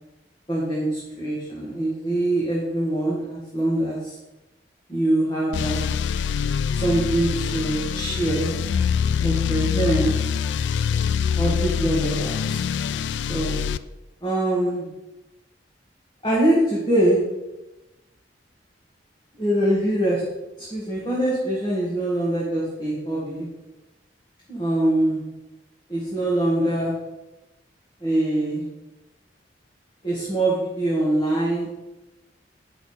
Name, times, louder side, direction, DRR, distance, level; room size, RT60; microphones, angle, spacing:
voice 1, 0.5-4.2 4.9-5.9 6.7-8.5 9.2-10.3 11.4-12.6 13.3-13.5 14.2-14.9 16.2-17.2 19.4-20.2 20.6-23.5 24.5-25.2 25.9-27.0 28.0-28.7 30.0-31.7, right 1 dB, 25° left, -6 dB, 1.8 m, -23 dB
sound 1, 5.5-13.8, left 7 dB, 75° left, 0.3 m, -24 dB
8.3 x 5.8 x 4.3 m, 1.0 s
head